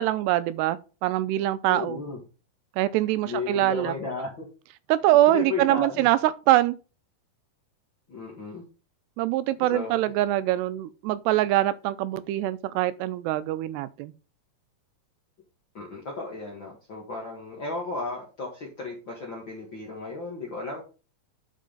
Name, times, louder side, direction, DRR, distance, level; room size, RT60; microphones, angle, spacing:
voice 1, 0.0-2.0 2.8-3.9 4.9-6.8 9.2-14.1, right 14 dB, 90° right, 2.8 m, -24 dB
voice 2, 1.7-2.2 3.2-4.5 5.3-6.1 8.1-8.6 9.6-10.1 15.7-20.8, left 3 dB, 50° left, 1.4 m, -34 dB
10.5 x 5.4 x 3.9 m
omnidirectional pair, 4.7 m